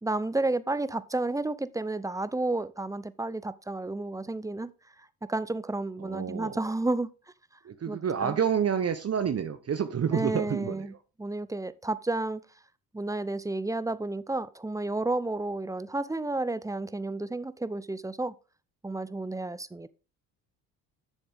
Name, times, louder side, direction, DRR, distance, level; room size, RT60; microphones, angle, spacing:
voice 1, 0.0-4.7 5.3-7.1 7.9-8.4 10.1-10.9 11.2-12.4 12.9-18.3 18.8-19.9, right 2 dB, 10° right, 0.7 m, -31 dB
voice 2, 6.0-6.6 7.6-10.9, right 7 dB, 35° right, 1.0 m, -29 dB
10.0 x 7.0 x 3.6 m
hypercardioid pair, 55°, 42 cm